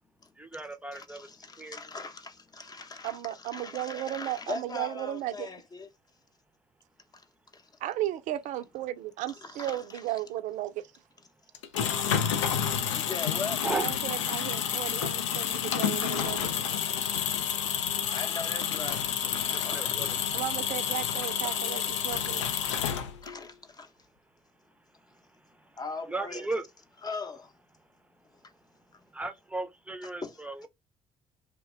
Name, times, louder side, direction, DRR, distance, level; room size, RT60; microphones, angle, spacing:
voice 1, 0.4-1.3 1.6-1.8 13.6-13.9 19.5-20.1 26.1-26.7 29.1-30.7, right 2 dB, 10° right, 0.6 m, -35 dB
voice 2, 0.9-5.9 7.1-7.2 7.5-7.7 9.3-10.1 12.9-13.6 18.0-20.0 21.4-21.6 22.5-22.6 23.2-23.9 25.8-26.5 27.0-27.5 28.4-28.5 28.9-29.0 30.2-30.4, left 4 dB, 25° left, 0.7 m, -40 dB
voice 3, 3.0-5.5 7.8-10.8 13.7-16.5 20.3-22.4, right 14 dB, 55° right, 0.4 m, -35 dB
sound 1, 11.5-23.4, left 8 dB, 75° left, 0.4 m, -29 dB
2.9 x 2.2 x 3.1 m
figure-of-eight pair, 55°, 15 cm